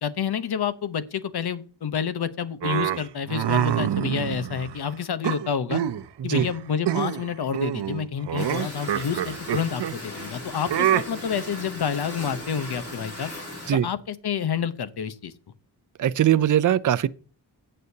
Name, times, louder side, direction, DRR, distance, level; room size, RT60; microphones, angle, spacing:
voice 1, 0.0-5.8 6.2-13.3 13.7-15.3, left 7 dB, 70° left, 1.0 m, -29 dB
sound 1, 2.6-4.8 5.2-6.0 6.3-6.6 6.8-7.3 7.5-10.0 10.7-11.0, right 11 dB, 85° right, 0.7 m, -26 dB
sound 2, 8.4-13.7, left 1 dB, 35° left, 5.3 m, -37 dB
voice 2, 16.0-17.1, right 11 dB, 50° right, 0.5 m, -20 dB
16.0 x 6.6 x 2.8 m
wide cardioid pair, 135°, 41 cm